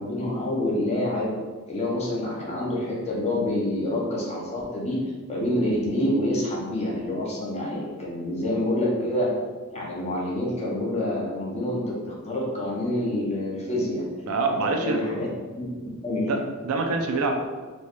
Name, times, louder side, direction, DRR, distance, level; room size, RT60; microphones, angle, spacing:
voice 1, 0.0-1.3 1.7-9.3 9.7-14.0 14.5-15.3 15.5-15.6 16.0-16.3, left 1 dB, 30° left, -4 dB, 0.8 m, -27 dB
voice 2, 14.3-15.0 15.8-15.9 16.3-16.4 16.6-17.5, right 3 dB, 80° right, 2 dB, 0.5 m, -25 dB
4.2 x 2.3 x 3.0 m, 1.4 s
head